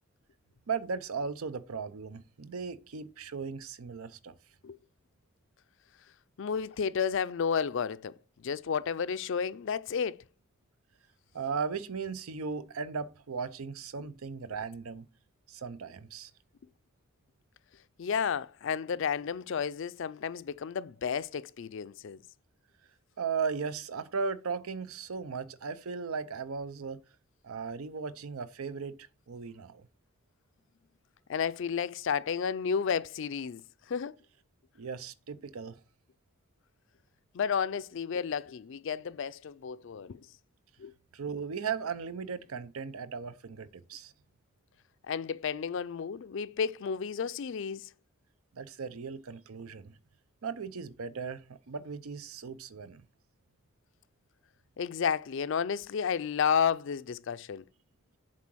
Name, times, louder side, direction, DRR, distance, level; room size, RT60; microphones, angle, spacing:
voice 1, 0.7-4.3 11.3-15.1 15.5-16.3 23.2-27.0 27.4-29.0 29.3-29.9 34.7-35.8 41.1-44.1 48.5-50.0 50.4-53.0, right 5 dB, 85° right, 0.6 m, -37 dB
voice 2, 6.4-10.2 18.0-22.2 31.3-33.6 33.9-34.1 37.3-40.3 40.8-40.9 45.0-47.9 54.8-57.6, left 6 dB, 60° left, 0.4 m, -32 dB
7.5 x 3.8 x 6.1 m
head